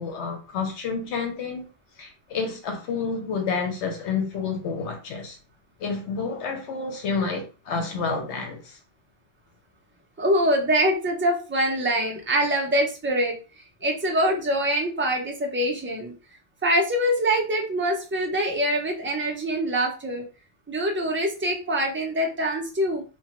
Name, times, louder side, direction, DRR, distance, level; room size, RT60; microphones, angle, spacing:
voice 1, 0.0-1.7 2.0-5.4 5.8-8.8, left 5 dB, 80° left, 1.0 m, -29 dB
voice 2, 10.2-16.1 16.6-20.2 20.7-23.0, equal, 20° right, 0.3 m, -24 dB
3.0 x 2.1 x 2.9 m
omnidirectional pair, 1.2 m